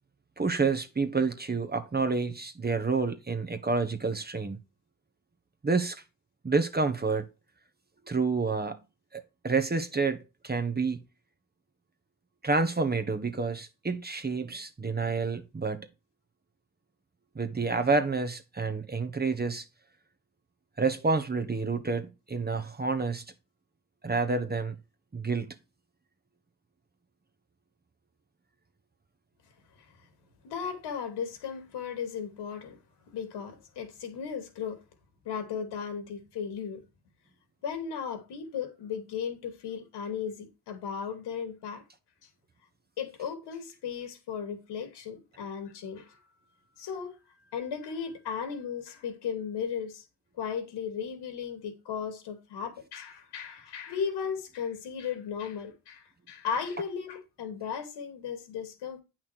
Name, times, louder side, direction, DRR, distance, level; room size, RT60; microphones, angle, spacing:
voice 1, 0.4-4.6 5.6-6.0 6.4-7.3 8.1-8.8 9.1-11.0 12.4-15.9 17.3-19.6 20.8-23.2 24.0-24.8 25.1-25.6, right 4 dB, 25° right, 1.4 m, -29 dB
voice 2, 30.4-32.8 33.1-34.8 35.2-36.8 37.6-41.8 43.0-46.3 46.8-47.2 47.5-50.0 50.4-59.0, left 7 dB, 75° left, 2.9 m, -36 dB
8.6 x 6.0 x 4.6 m
supercardioid pair, 65°, 42 cm